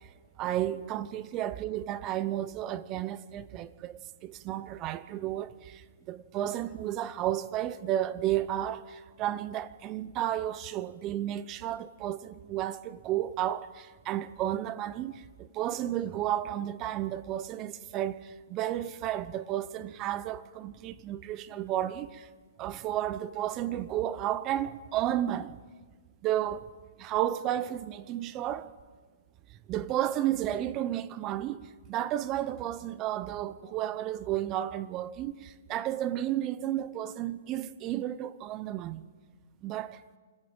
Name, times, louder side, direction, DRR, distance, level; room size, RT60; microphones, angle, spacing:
voice 1, 0.4-15.1 15.4-22.3 22.6-25.6 26.2-26.7 27.0-28.7 29.7-31.6 31.9-39.0 39.6-40.0, right 12 dB, 25° right, 0.8 m, -32 dB
25.5 x 14.5 x 8.9 m
hypercardioid pair, 150°, 0 cm